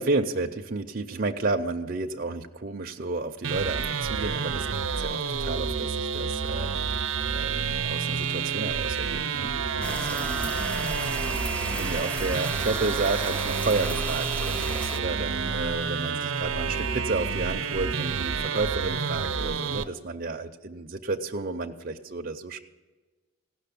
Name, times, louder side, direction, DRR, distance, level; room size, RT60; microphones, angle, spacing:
voice 1, 0.0-4.7 4.9-10.6 10.9-22.6, right 3 dB, 45° right, 3 dB, 0.6 m, -32 dB
sound 1, 3.4-19.8, right 5 dB, 75° right, 0.7 m, -29 dB
sound 2, 9.8-15.0, right 1 dB, 5° left, 0.5 m, -35 dB
16.0 x 6.4 x 8.4 m, 1.2 s
head